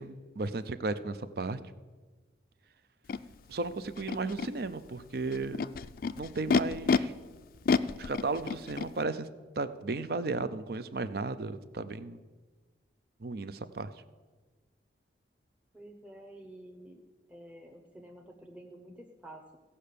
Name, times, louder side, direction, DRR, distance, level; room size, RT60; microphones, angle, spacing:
voice 1, 0.0-1.6 3.5-5.6 6.2-7.1 8.0-9.3 9.6-12.2 13.2-13.9, right 3 dB, 55° right, 13 dB, 0.6 m, -34 dB
Animal, 3.1-3.2 4.0-4.5 5.3-7.0 7.6-8.9, left 5 dB, 50° left, 0.3 m, -28 dB
voice 2, 15.7-17.0 17.3-19.6, right 1 dB, 5° right, 1 dB, 0.8 m, -50 dB
16.0 x 5.6 x 6.7 m, 1.3 s
head